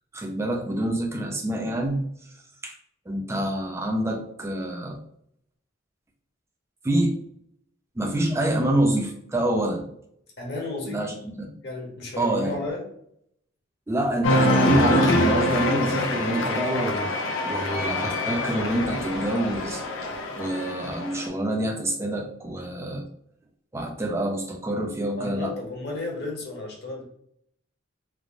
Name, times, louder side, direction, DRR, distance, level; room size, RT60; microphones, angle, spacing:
voice 1, 0.1-2.0 2.6-2.7 3.1-5.0 6.8-7.2 8.0-9.9 10.9-11.5 12.2-12.6 13.9-17.1 17.4-23.1 23.7-25.5, right 1 dB, 15° right, 1 dB, 0.4 m, -27 dB
voice 2, 10.4-11.1 11.6-12.8 25.2-27.0, left 2 dB, 55° left, -1 dB, 0.8 m, -33 dB
Cheering, 14.2-21.3, left 1 dB, 80° left, 0.5 m, -25 dB
3.2 x 2.0 x 2.4 m, 0.70 s
head